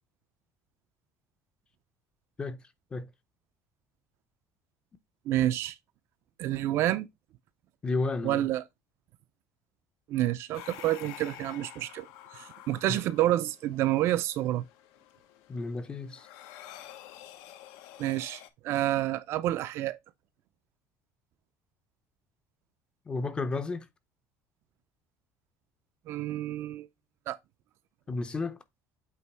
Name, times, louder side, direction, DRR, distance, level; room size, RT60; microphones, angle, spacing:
voice 1, 5.3-5.7 6.4-7.1 8.2-8.6 10.1-12.1 12.3-14.6 18.0-20.0 26.1-26.9 27.3-27.4, right 14 dB, 50° right, 0.5 m, -29 dB
voice 2, 7.8-8.5 12.9-13.0 15.5-16.3 23.1-23.9 28.1-28.6, left 3 dB, 15° left, 0.6 m, -32 dB
sound 1, 10.5-18.5, left 11 dB, 75° left, 0.9 m, -49 dB
8.3 x 3.0 x 4.5 m
cardioid pair, 170°, 6 cm